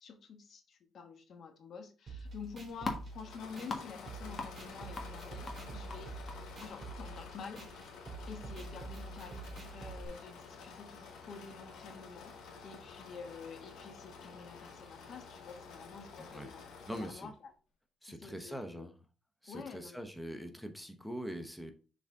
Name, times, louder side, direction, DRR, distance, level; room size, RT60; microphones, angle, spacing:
voice 1, 0.0-6.1 6.6-7.8 8.3-17.5 18.0-18.9 19.5-20.0, left 5 dB, 60° left, 6 dB, 1.2 m, -49 dB
sound 1, 2.1-10.1, right 3 dB, 40° right, 2.8 m, -47 dB
sound 2, 2.3-9.0, left 3 dB, 35° left, 1.5 m, -46 dB
Engine / Mechanisms, 3.1-17.4, left 5 dB, 85° left, 1.9 m, -51 dB
voice 2, 16.9-17.3 18.0-19.0 19.4-21.7, equal, ahead, 6 dB, 0.9 m, -43 dB
7.0 x 3.9 x 3.7 m, 0.36 s
cardioid pair, 90°, 0 cm